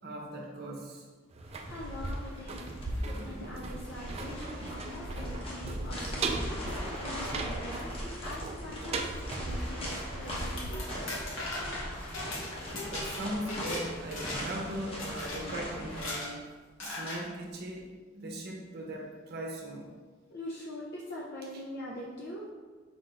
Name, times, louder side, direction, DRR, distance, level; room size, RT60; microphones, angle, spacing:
voice 1, 0.0-1.1 3.0-3.5 10.5-10.6 12.9-16.4 16.8-19.9, right 1 dB, 55° right, 0 dB, 0.7 m, -39 dB
sound 1, 1.3-12.1 12.4-12.5, right 2 dB, 30° right, 0.3 m, -38 dB
voice 2, 1.4-2.6 3.0-11.0 20.3-22.5, left 1 dB, 60° left, -5 dB, 0.6 m, -43 dB
sound 2, 1.5-16.1, equal, 30° left, 0.8 m, -41 dB
sound 3, 10.4-13.8 14.1-14.6 15.0-15.4 15.9-16.3 16.8-17.2, left 2 dB, 80° left, 1.0 m, -38 dB
5.0 x 2.5 x 3.9 m, 1.5 s
head